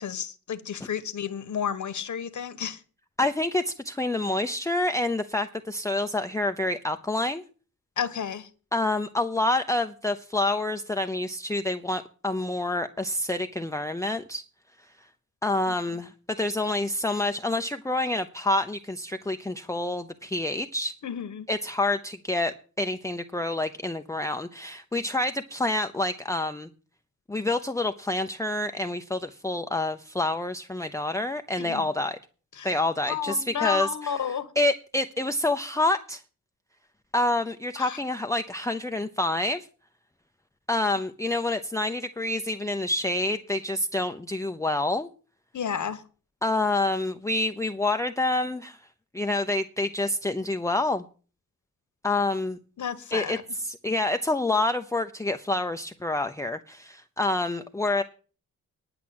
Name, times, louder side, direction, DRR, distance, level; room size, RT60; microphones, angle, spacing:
voice 1, 0.0-2.8 8.0-8.5 15.7-15.8 21.0-21.5 31.6-31.8 32.6-32.7 33.1-34.5 37.8-38.0 45.5-46.0 52.8-53.4, left 7 dB, 60° left, 1.4 m, -31 dB
voice 2, 3.2-7.4 8.7-14.4 15.4-16.1 16.4-20.9 21.5-26.7 27.3-32.2 32.6-34.1 34.6-36.2 37.1-39.7 40.7-45.1 46.4-48.8 49.1-51.0 52.0-52.6 53.1-58.0, left 2 dB, 10° left, 0.6 m, -27 dB
10.5 x 5.9 x 8.6 m
cardioid pair, 75°, 33 cm